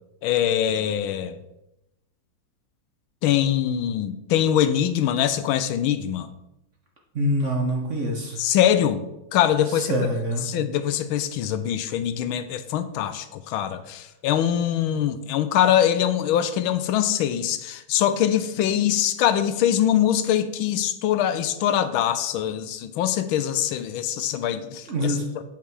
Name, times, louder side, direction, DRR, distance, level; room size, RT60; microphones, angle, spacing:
voice 1, 0.2-1.4 3.2-6.3 8.4-9.0 9.3-10.0 10.4-25.4, left 10 dB, 80° left, 12 dB, 1.4 m, -23 dB
voice 2, 7.1-8.4 9.8-10.4 24.9-25.2, equal, 45° right, 1 dB, 1.1 m, -25 dB
8.6 x 5.8 x 4.7 m, 0.89 s
omnidirectional pair, 2.3 m